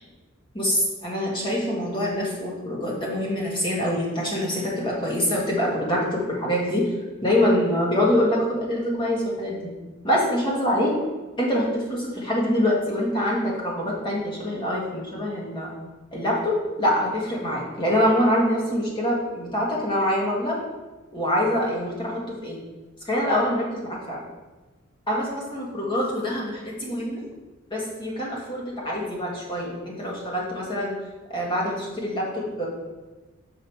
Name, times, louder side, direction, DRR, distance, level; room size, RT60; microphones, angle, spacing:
voice 1, 0.5-6.9 7.2-9.7 10.0-10.9 11.4-15.7 16.1-20.6 21.1-22.6 23.1-24.3 25.1-27.2 27.7-30.9 31.3-32.7, left 1 dB, 25° left, -4 dB, 1.6 m, -25 dB
6.3 x 4.7 x 4.7 m, 1.2 s
head